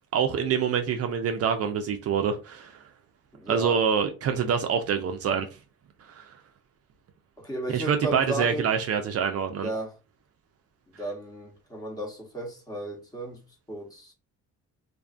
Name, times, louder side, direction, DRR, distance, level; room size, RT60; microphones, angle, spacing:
voice 1, 0.1-2.8 3.5-5.6 6.2-6.3 7.7-9.7, right 7 dB, 50° right, 0.4 m, -26 dB
voice 2, 3.3-3.8 7.4-8.7 9.6-9.9 10.9-13.4 13.7-14.1, right 1 dB, 10° left, 1.0 m, -34 dB
2.5 x 2.4 x 2.3 m
cardioid pair, 90°, 30 cm